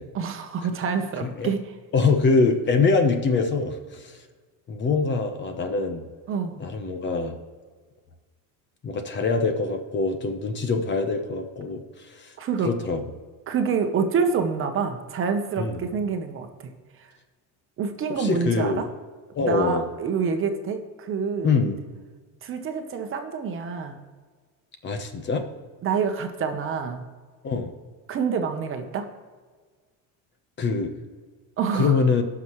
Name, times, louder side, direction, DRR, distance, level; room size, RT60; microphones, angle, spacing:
voice 1, 0.1-1.6 6.3-6.6 12.4-12.7 13.5-16.7 17.8-18.9 19.4-21.5 22.4-24.0 25.8-27.0 28.1-29.1 31.6-32.0, right 6 dB, 35° right, 6 dB, 1.0 m, -27 dB
voice 2, 1.9-4.2 4.7-6.1 6.6-7.4 8.8-12.3 12.6-13.0 15.6-15.9 18.1-18.8 19.4-19.8 21.4-21.8 24.8-25.4 27.4-27.7 30.6-30.9 31.7-32.2, left 4 dB, 30° left, 7 dB, 0.9 m, -24 dB
17.5 x 6.0 x 3.1 m, 1.5 s
cardioid pair, 140°, 36 cm